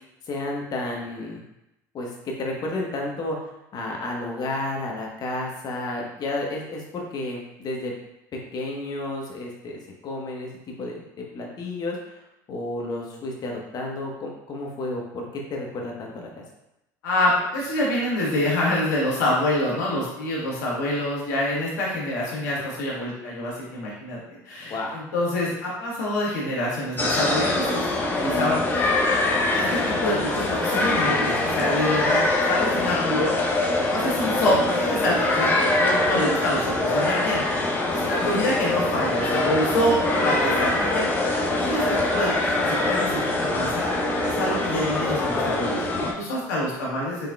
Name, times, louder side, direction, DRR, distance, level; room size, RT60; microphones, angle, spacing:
voice 1, 0.3-1.4 1.9-2.1 2.4-3.4 3.7-7.9 8.5-12.2 12.5-16.4 24.7-25.0 37.9-38.4 40.1-40.3, left 2 dB, 45° left, 0 dB, 1.1 m, -32 dB
voice 2, 17.0-24.2 24.4-27.8 28.2-28.9 29.5-33.4 33.9-41.1 41.6-43.9 44.2-47.3, left 1 dB, 90° left, -5 dB, 1.4 m, -26 dB
sound 1, 27.0-46.1, left 2 dB, 20° left, 0.8 m, -23 dB
5.1 x 3.5 x 2.3 m, 0.88 s
supercardioid pair, 85°, 10 cm